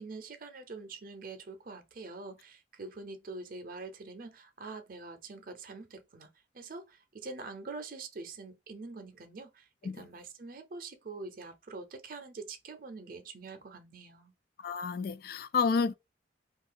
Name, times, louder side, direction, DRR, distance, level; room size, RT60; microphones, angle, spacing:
voice 1, 0.0-6.3 6.5-14.3, right 3 dB, 50° right, 0.6 m, -45 dB
voice 2, 14.6-15.9, left 5 dB, 50° left, 0.3 m, -30 dB
2.7 x 2.5 x 3.8 m
head